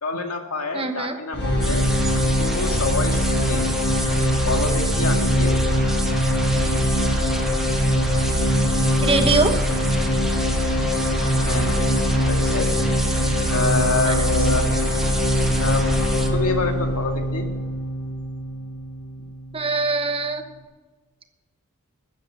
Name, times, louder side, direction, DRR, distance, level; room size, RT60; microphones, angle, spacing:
voice 1, 0.0-1.9 2.4-3.6 4.5-5.6 11.5-11.9 12.2-12.7 13.5-14.7 15.6-15.8 16.3-17.4, left 3 dB, 85° left, 4 dB, 1.9 m, -27 dB
voice 2, 0.7-1.2 9.0-9.5 14.0-14.1 19.5-20.4, right 3 dB, 25° right, 6 dB, 1.1 m, -22 dB
sound 1, 1.3-19.3, equal, 50° left, 5.4 m, -22 dB
sound 2, 1.6-16.3, right 1 dB, ahead, 1.2 m, -32 dB
13.5 x 8.4 x 7.9 m, 1.3 s
head